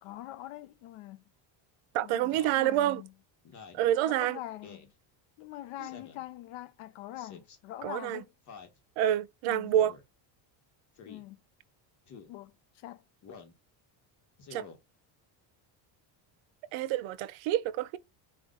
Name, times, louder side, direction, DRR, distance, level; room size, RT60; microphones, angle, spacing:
voice 1, 0.0-1.2 2.0-3.1 4.1-4.9 5.4-8.3 9.5-9.7 11.0-11.4 12.3-13.0, left 15 dB, 90° left, 0.8 m, -44 dB
voice 2, 1.9-3.0 3.7-4.4 7.8-8.2 9.0-9.9 14.5-14.7 16.7-18.0, right 12 dB, 75° right, 0.8 m, -28 dB
Speech synthesizer, 2.3-2.6 3.4-3.9 4.6-4.9 5.8-6.3 7.2-7.6 8.5-8.8 9.7-10.0 11.0-11.2 12.1-12.3 13.2-13.6 14.4-14.8, left 5 dB, 35° left, 1.1 m, -49 dB
5.2 x 2.4 x 3.7 m
cardioid pair, 170°, 48 cm